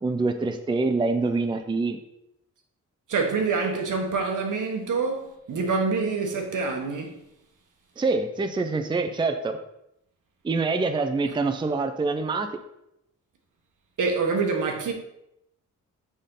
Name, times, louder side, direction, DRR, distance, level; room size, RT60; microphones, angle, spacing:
voice 1, 0.0-2.0 8.0-9.6 10.4-12.5, right 3 dB, 15° right, 0.4 m, -25 dB
voice 2, 3.1-7.2 14.0-14.9, right 4 dB, 75° right, 1.2 m, -26 dB
6.4 x 5.2 x 3.8 m
wide cardioid pair, 125°, 31 cm